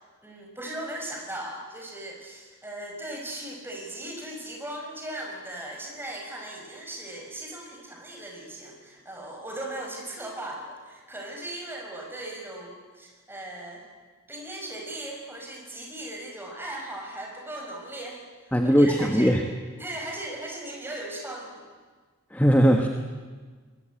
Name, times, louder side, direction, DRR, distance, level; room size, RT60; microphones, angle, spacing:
voice 1, 0.2-13.8 14.3-18.2 18.6-19.4 19.8-21.6, right 1 dB, 10° right, 0 dB, 5.6 m, -38 dB
voice 2, 18.5-19.5 22.3-22.9, equal, 10° left, 4 dB, 1.3 m, -19 dB
23.0 x 21.5 x 9.0 m, 1.5 s
head